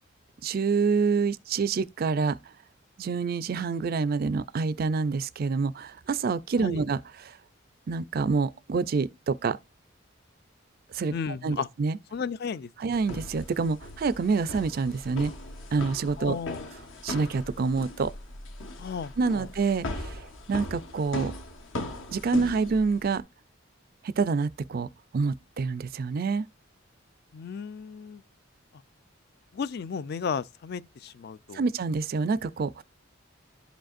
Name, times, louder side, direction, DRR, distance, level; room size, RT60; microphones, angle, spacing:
voice 1, 0.4-2.4 3.0-7.4 7.9-9.6 10.9-11.1 11.4-12.0 12.8-15.3 15.7-16.4 17.0-18.1 19.2-21.3 22.1-23.2 24.0-26.5 31.5-32.8, right 4 dB, 45° right, 0.4 m, -27 dB
voice 2, 11.1-11.7 12.1-12.7 16.2-16.7 18.8-19.5 27.3-28.2 29.5-31.6, left 6 dB, 50° left, 0.4 m, -34 dB
sound 1, 12.9-23.2, left 1 dB, 75° left, 1.2 m, -38 dB
11.0 x 5.1 x 2.5 m
head